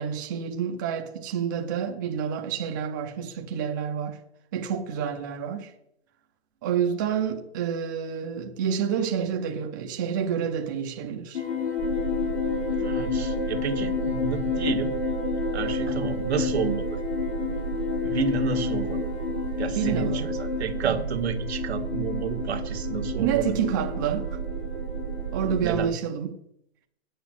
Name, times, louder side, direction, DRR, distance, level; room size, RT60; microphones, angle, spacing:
voice 1, 0.0-4.2 4.5-5.7 6.6-11.4 19.8-20.3 20.8-20.9 23.2-24.4 25.3-26.4, right 8 dB, 20° right, 0.6 m, -28 dB
sound 1, 11.3-25.6, left 6 dB, 85° left, 3.3 m, -30 dB
sound 2, 11.8-25.8, right 9 dB, 60° right, 0.6 m, -34 dB
voice 2, 12.8-14.9 15.5-17.0 18.0-19.1 19.6-23.6 25.6-25.9, right 6 dB, 85° right, 1.6 m, -30 dB
8.8 x 8.3 x 7.6 m
hypercardioid pair, 175°, 32 cm